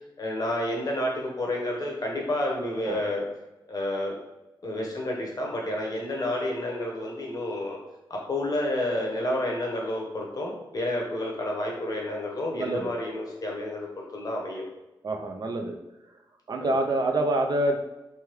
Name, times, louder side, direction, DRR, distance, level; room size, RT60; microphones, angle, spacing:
voice 1, 0.2-3.2 3.7-4.2 4.6-7.8 8.1-14.6 16.6-16.8, left 1 dB, 45° left, -1 dB, 0.8 m, -30 dB
voice 2, 12.5-12.9 15.0-15.7 16.5-17.8, right 1 dB, 50° right, 3 dB, 0.4 m, -26 dB
3.3 x 2.2 x 3.0 m, 0.98 s
wide cardioid pair, 125°, 9 cm